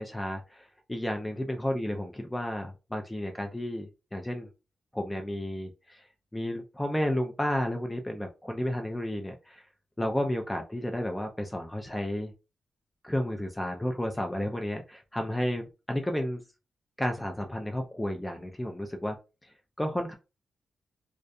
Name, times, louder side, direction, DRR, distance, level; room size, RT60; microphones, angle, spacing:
voice 1, 0.0-4.5 4.9-6.1 6.3-9.6 10.0-12.3 13.0-16.4 17.0-19.2 19.8-20.1, left 1 dB, 10° left, 4 dB, 0.4 m, -32 dB
2.3 x 2.2 x 2.6 m, 0.29 s
cardioid pair, 90°, 0 cm